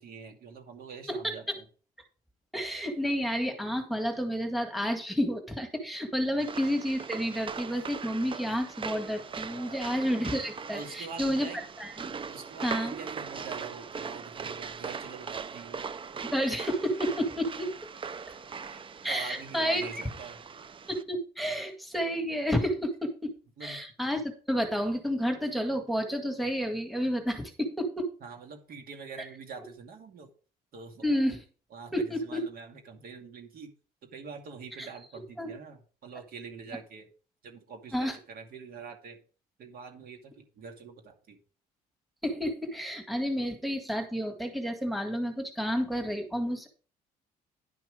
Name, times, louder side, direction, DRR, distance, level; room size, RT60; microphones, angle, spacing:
voice 1, 0.0-1.6 6.3-6.4 9.4-9.8 10.7-11.6 12.3-15.9 18.6-18.8 19.1-20.4 23.6-23.8 28.2-30.3 30.7-31.4 31.7-33.7 34.0-37.1 37.4-39.2 39.6-41.4, right 5 dB, 60° right, 4 dB, 2.4 m, -45 dB
voice 2, 2.5-11.5 11.8-12.2 12.6-12.9 16.3-17.7 19.0-19.9 20.9-23.3 23.6-28.1 31.0-31.4 31.9-32.4 34.8-34.9 35.4-35.5 37.9-38.2 42.2-46.7, equal, ahead, 5 dB, 1.9 m, -30 dB
sound 1, 6.4-21.0, right 5 dB, 30° right, 0.7 m, -40 dB
11.0 x 6.0 x 5.0 m, 0.38 s
cardioid pair, 110°, 17 cm